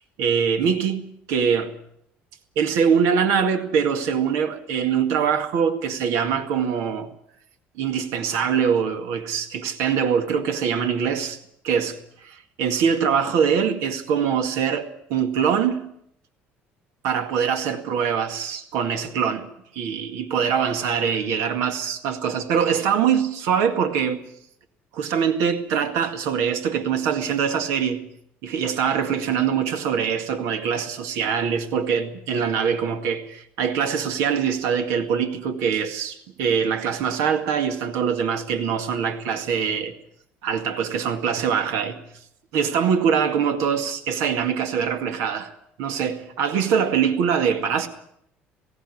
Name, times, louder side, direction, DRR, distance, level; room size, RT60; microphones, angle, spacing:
voice 1, 0.2-1.8 2.6-7.1 7.8-11.4 11.6-15.8 17.0-24.2 24.9-28.0 28.4-39.9 40.4-42.0 42.5-45.5 45.8-47.9, right 7 dB, 75° right, 2.0 m, -23 dB
17.0 x 16.5 x 9.9 m
supercardioid pair, 75°, 5 cm